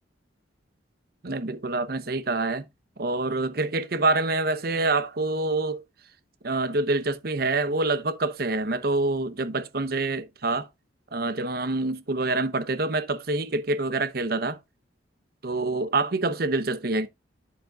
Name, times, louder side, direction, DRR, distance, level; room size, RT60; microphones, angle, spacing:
voice 1, 1.2-2.7 3.0-5.8 6.4-10.7 11.1-14.6 15.4-17.1, right 2 dB, 55° right, 0.9 m, -26 dB
10.5 x 7.4 x 2.4 m
head